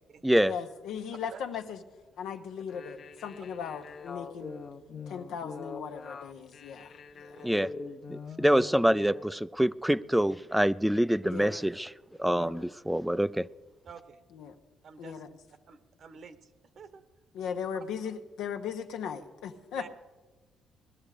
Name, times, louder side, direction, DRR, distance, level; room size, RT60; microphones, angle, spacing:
voice 1, 0.4-1.8 2.2-4.6 5.1-7.4 11.2-11.6 12.3-12.6 14.3-14.6 15.0-15.3 17.3-19.9, left 7 dB, 85° left, 1.1 m, -38 dB
sound 1, 2.6-9.3, left 4 dB, 50° left, 0.9 m, -43 dB
voice 2, 8.1-11.9 12.2-13.5, equal, 5° right, 0.4 m, -26 dB
voice 3, 13.8-14.2 14.8-15.2 15.7-16.5 16.7-17.0 19.7-19.9, right 6 dB, 60° right, 1.2 m, -48 dB
19.0 x 12.0 x 5.0 m
cardioid pair, 90°, 0 cm